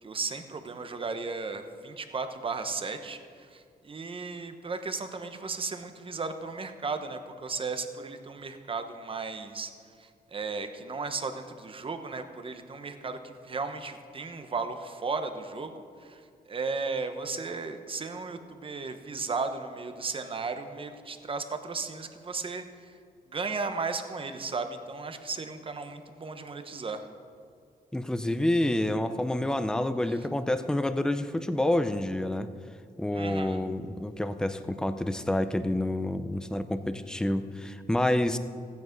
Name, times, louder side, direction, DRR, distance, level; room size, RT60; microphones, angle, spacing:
voice 1, 0.0-9.7 10.0-22.9 23.3-27.1 33.1-33.6, right 4 dB, 35° right, 8 dB, 1.0 m, -35 dB
voice 2, 27.9-32.5 33.0-38.4, left 1 dB, 5° left, 10 dB, 0.5 m, -28 dB
15.5 x 9.5 x 5.2 m, 2.2 s
wide cardioid pair, 130°, 16 cm